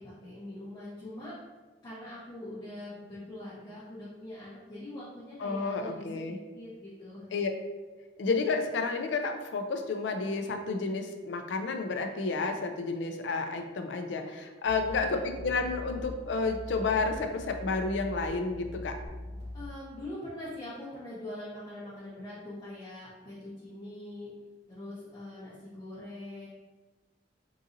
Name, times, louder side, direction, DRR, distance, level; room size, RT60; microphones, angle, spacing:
voice 1, 0.0-1.3 1.8-7.3 14.7-15.3 19.5-24.3 24.7-26.5, left 1 dB, 25° left, -11 dB, 0.8 m, -43 dB
voice 2, 5.4-6.4 7.3-7.5 8.2-19.0, left 3 dB, 75° left, 6 dB, 0.4 m, -31 dB
sound 1, 14.6-19.7, left 1 dB, 40° right, 1.4 m, -42 dB
3.8 x 2.7 x 2.5 m, 1.2 s
head